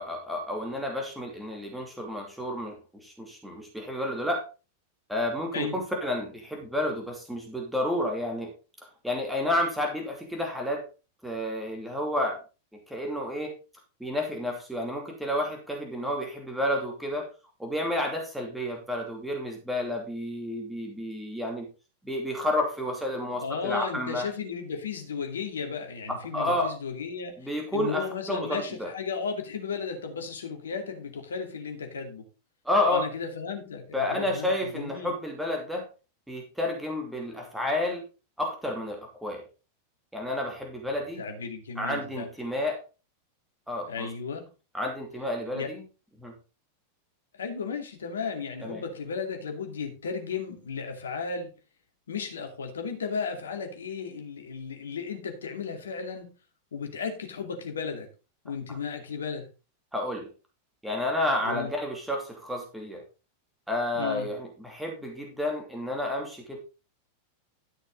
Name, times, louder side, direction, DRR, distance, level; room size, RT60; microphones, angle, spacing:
voice 1, 0.0-4.4 5.1-8.5 9.0-10.8 11.2-12.4 12.9-13.5 14.0-17.3 17.6-21.7 22.0-24.3 26.3-26.7 27.4-28.9 32.6-33.1 33.9-35.9 36.3-38.0 38.4-39.4 40.1-41.2 41.8-42.8 43.7-44.1 44.7-45.8 46.2-46.3 48.6-48.8 59.9-60.3 60.8-63.0 63.7-66.6, left 1 dB, 5° right, 1 dB, 2.7 m, -30 dB
voice 2, 23.3-32.3 32.9-35.1 41.2-42.3 42.6-42.7 43.9-44.5 45.5-45.7 47.3-51.5 52.1-56.4 56.7-58.1 58.4-59.5 61.4-61.7 63.9-64.3, left 5 dB, 65° left, 4 dB, 2.5 m, -34 dB
13.0 x 6.6 x 3.9 m, 0.32 s
figure-of-eight pair, 90°, 0 cm